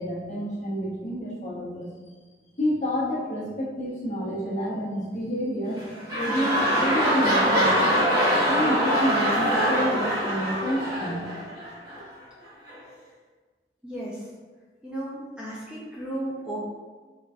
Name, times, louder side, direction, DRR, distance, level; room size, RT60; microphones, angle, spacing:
voice 1, 0.0-1.9 2.6-5.8 6.1-8.1 8.4-11.2, equal, 40° left, -5 dB, 0.8 m, -29 dB
sound 1, 5.6-12.0 12.7-12.8, equal, 25° right, 1.1 m, -23 dB
voice 2, 13.8-14.3 14.8-16.6, right 1 dB, 5° right, -7 dB, 0.5 m, -34 dB
4.4 x 2.5 x 2.3 m, 1.4 s
head